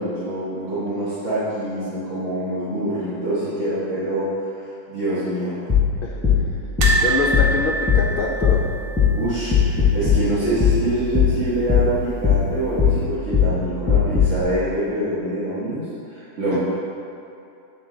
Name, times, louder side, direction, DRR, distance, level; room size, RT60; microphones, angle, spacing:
voice 1, 0.0-4.3 4.9-5.6 9.2-15.8 16.1-16.6, right 1 dB, 60° right, -13 dB, 1.6 m, -25 dB
sound 1, 5.7-14.4, left 6 dB, 10° left, 1.0 m, -20 dB
sound 2, 6.8-9.9 10.1-10.3 10.6-10.7 11.9-12.4 13.0-13.1, right 2 dB, 75° right, 1.3 m, -25 dB
voice 2, 7.0-8.6 16.5-16.6, left 3 dB, 80° left, -2 dB, 0.4 m, -25 dB
8.6 x 3.7 x 3.8 m, 2.7 s
omnidirectional pair, 1.5 m